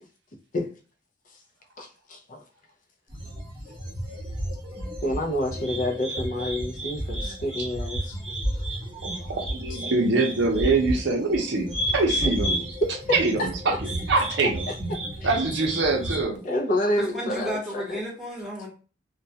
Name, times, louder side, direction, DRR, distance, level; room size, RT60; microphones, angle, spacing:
voice 1, 1.8-2.4 5.0-8.2 12.2-12.3 12.8-13.5 14.4-15.3 16.4-18.0, left 1 dB, 45° left, 2 dB, 0.4 m, -28 dB
sound 1, 3.1-16.3, equal, 30° right, 0.9 m, -32 dB
voice 2, 9.0-12.6 13.1-13.7 14.1-14.7 15.2-16.4, right 3 dB, 70° right, 1 dB, 0.6 m, -24 dB
voice 3, 16.8-18.7, equal, ahead, -5 dB, 0.9 m, -32 dB
2.2 x 2.1 x 2.7 m, 0.37 s
head